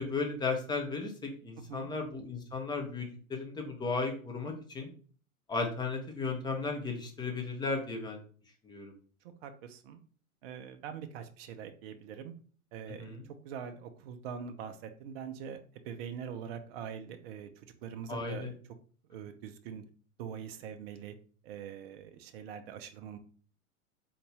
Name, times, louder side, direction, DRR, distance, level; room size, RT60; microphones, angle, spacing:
voice 1, 0.0-4.9 5.5-8.2 8.6-8.9 13.0-13.2 18.1-18.5, left 4 dB, 10° left, 1 dB, 0.6 m, -35 dB
voice 2, 1.6-1.9 9.4-10.0 10.4-12.3 12.7-18.5 19.1-19.8 20.2-21.1 21.4-23.2, right 7 dB, 45° right, 7 dB, 0.5 m, -43 dB
3.9 x 2.5 x 3.1 m, 0.42 s
figure-of-eight pair, 95°, 43 cm